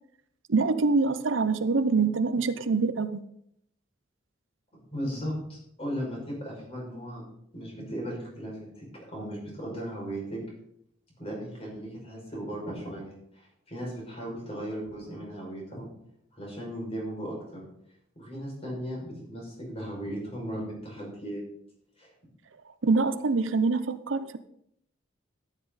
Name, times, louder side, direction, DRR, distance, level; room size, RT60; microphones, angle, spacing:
voice 1, 0.5-3.2 22.8-24.4, right 4 dB, 80° right, 12 dB, 0.7 m, -25 dB
voice 2, 4.7-7.2 7.5-10.4 11.2-15.9 16.3-17.6 18.2-21.4 22.0-22.1, equal, 30° left, -3 dB, 5.8 m, -37 dB
13.0 x 10.0 x 4.1 m, 0.74 s
head